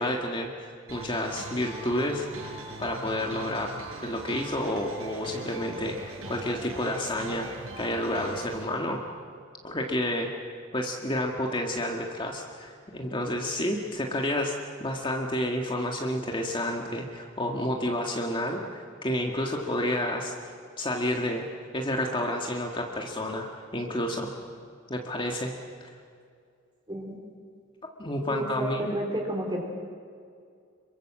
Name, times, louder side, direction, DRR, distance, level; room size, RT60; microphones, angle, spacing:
voice 1, 0.0-2.5 2.8-7.5 7.8-9.0 9.6-10.3 10.7-21.5 21.7-23.5 23.7-24.3 24.9-25.5 25.8-25.9 28.0-29.0, left 1 dB, 25° left, 1 dB, 1.8 m, -30 dB
sound 1, 0.9-8.6, right 2 dB, 90° right, 6.1 m, -40 dB
voice 2, 28.3-29.6, right 1 dB, 20° right, 0 dB, 3.6 m, -31 dB
27.0 x 23.0 x 7.5 m, 2.3 s
head